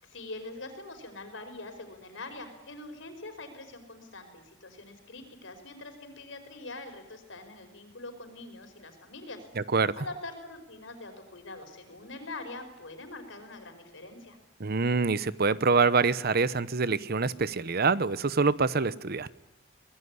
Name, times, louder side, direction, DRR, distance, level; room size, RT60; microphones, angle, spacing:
voice 1, 0.0-9.4 10.0-14.4, left 2 dB, 75° left, 7 dB, 5.2 m, -43 dB
voice 2, 9.6-9.9 14.6-19.3, right 4 dB, 55° right, 16 dB, 0.9 m, -25 dB
23.5 x 20.5 x 9.8 m, 0.94 s
head